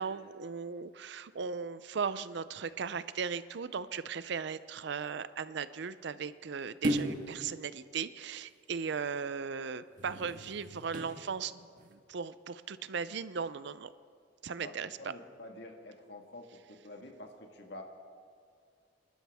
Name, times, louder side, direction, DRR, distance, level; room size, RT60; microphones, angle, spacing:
voice 1, 0.0-11.7 11.9-13.9 14.4-14.9, right 6 dB, 65° right, 14 dB, 0.5 m, -37 dB
sound 1, 6.8-7.3 9.9-11.2 11.8-11.9, right 1 dB, 45° right, 1.6 m, -35 dB
voice 2, 14.6-17.8, left 1 dB, 60° left, 3 dB, 1.7 m, -48 dB
27.0 x 12.5 x 3.5 m, 2.3 s
head